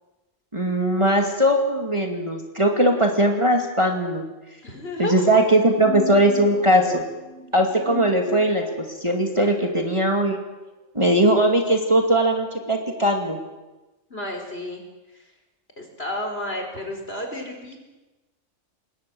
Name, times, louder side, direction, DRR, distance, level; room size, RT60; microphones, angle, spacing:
voice 1, 0.5-4.3 5.0-7.0 7.5-8.6 9.0-10.4 10.9-13.4, right 1 dB, 25° right, 2 dB, 2.5 m, -20 dB
voice 2, 4.6-5.4 9.0-9.1 14.1-14.8 15.8-17.8, left 1 dB, 50° left, 3 dB, 5.0 m, -31 dB
sound 1, 5.6-9.0, left 1 dB, 60° right, 3.8 m, -37 dB
27.0 x 21.0 x 7.9 m, 1.1 s
omnidirectional pair, 1.3 m